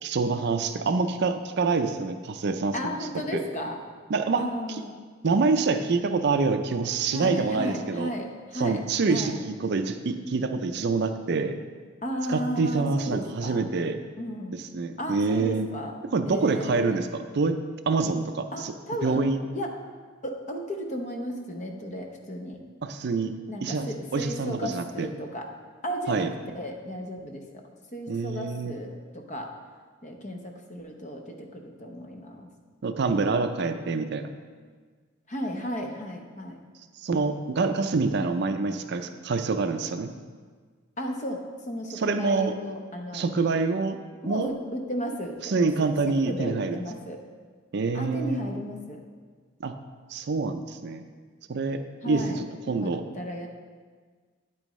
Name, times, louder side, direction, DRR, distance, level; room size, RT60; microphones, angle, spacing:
voice 1, 0.0-3.0 3.3-3.4 4.1-4.8 5.2-8.1 8.5-9.3 9.6-11.6 12.3-14.0 14.5-15.7 16.1-17.6 17.9-18.7 19.0-19.5 22.8-23.3 23.6-25.1 26.1-26.3 28.1-28.8 32.8-34.3 37.0-40.1 41.9-42.6 43.1-44.0 44.2-44.5 45.4-46.8 47.7-48.5 49.6-49.7 50.1-51.0 51.5-53.0, right 4 dB, 55° right, 8 dB, 0.4 m, -26 dB
voice 2, 2.7-3.8 4.4-5.0 7.1-8.8 9.1-9.4 12.0-13.6 14.2-14.6 15.0-15.9 16.2-17.0 18.5-19.2 19.5-19.8 20.2-22.6 23.5-25.5 25.8-27.4 27.9-29.5 30.0-32.5 35.3-36.6 41.0-43.2 44.2-47.2 47.9-49.0 52.0-52.4 52.8-53.5, equal, 35° left, 3 dB, 0.8 m, -34 dB
9.0 x 8.8 x 3.1 m, 1.5 s
head